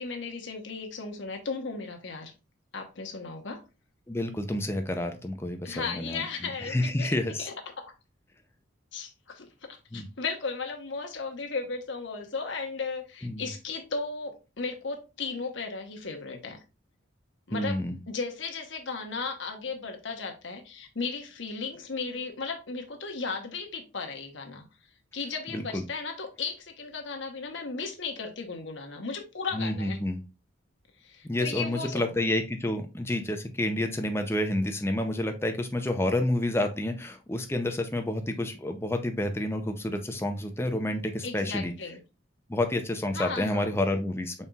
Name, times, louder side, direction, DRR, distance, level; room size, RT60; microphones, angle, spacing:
voice 1, 0.0-2.3 2.7-3.6 5.6-7.5 8.9-16.6 17.5-17.8 18.1-24.6 25.1-30.0 31.0-32.1 41.2-42.0 43.1-43.7, left 4 dB, 70° left, 3 dB, 1.0 m, -35 dB
voice 2, 4.1-7.5 9.9-10.1 13.2-13.5 17.5-18.0 25.5-25.8 29.5-30.2 31.2-41.7 42.5-44.3, left 1 dB, 10° left, 6 dB, 0.5 m, -29 dB
5.4 x 4.2 x 2.3 m, 0.30 s
head